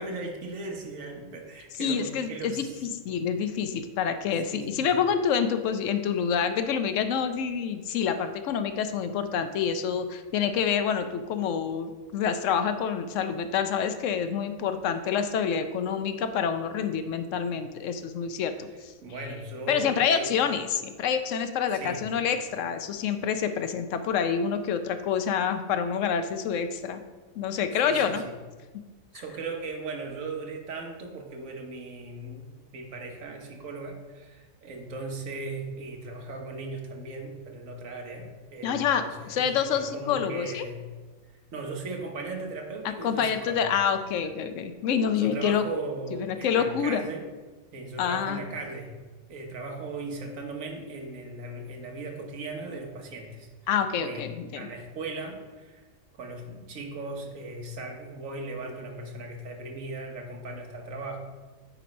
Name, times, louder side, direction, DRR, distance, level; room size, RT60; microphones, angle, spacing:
voice 1, 0.0-2.8 4.5-5.0 19.0-20.4 21.7-22.0 27.7-28.2 29.1-40.9 41.5-43.8 45.2-47.3 47.7-48.9 49.3-53.5 53.9-55.8 56.1-61.2, right 3 dB, 70° right, 2 dB, 1.4 m, -38 dB
voice 2, 1.8-18.9 19.7-27.0 27.4-28.2 38.6-40.7 43.0-45.6 46.2-47.0 48.0-48.5 53.7-54.7, left 7 dB, 70° left, 9 dB, 0.9 m, -27 dB
9.0 x 3.1 x 5.1 m, 1.3 s
omnidirectional pair, 1.5 m